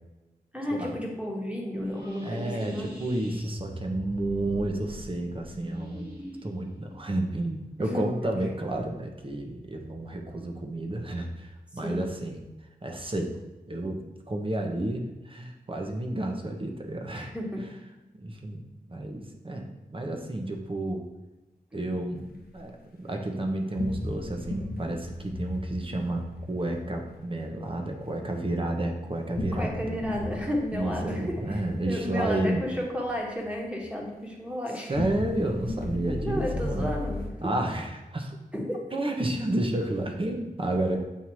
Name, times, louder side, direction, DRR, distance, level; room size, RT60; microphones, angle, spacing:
voice 1, 0.5-2.9 7.8-8.1 11.8-12.1 17.1-17.6 29.5-34.9 36.2-37.3 38.5-38.8, equal, 5° right, -2 dB, 1.4 m, -32 dB
sound 1, 1.7-8.5, equal, 90° right, 1.8 m, -42 dB
voice 2, 2.2-6.1 6.4-12.4 12.8-13.3 13.7-14.0 14.3-17.3 18.2-21.0 21.7-22.3 22.5-29.8 30.7-32.6 34.9-36.9 37.4-38.4 38.9-41.0, right 1 dB, 35° right, 2 dB, 0.9 m, -31 dB
sound 2, 22.2-22.8 23.8-28.1 29.3-33.9 34.9-37.3, left 1 dB, 85° left, 0.9 m, -36 dB
7.4 x 2.7 x 4.7 m, 1.1 s
wide cardioid pair, 65°, 15 cm